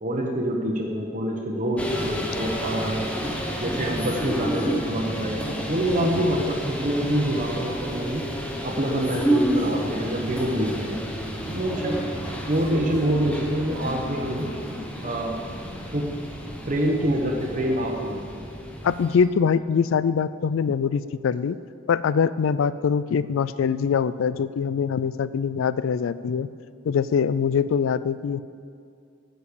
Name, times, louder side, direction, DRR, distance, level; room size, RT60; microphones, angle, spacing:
voice 1, 0.0-3.1 3.6-8.3 8.6-11.0 11.5-14.5 15.0-15.4 15.9-16.1 16.7-18.5, right 1 dB, 40° right, -1 dB, 0.9 m, -26 dB
sound 1, 1.8-19.2, equal, 5° left, 0.9 m, -30 dB
voice 2, 18.8-21.6 21.9-26.5 26.8-28.4, left 6 dB, 85° left, 16 dB, 0.4 m, -23 dB
13.0 x 5.2 x 8.4 m, 2.3 s
head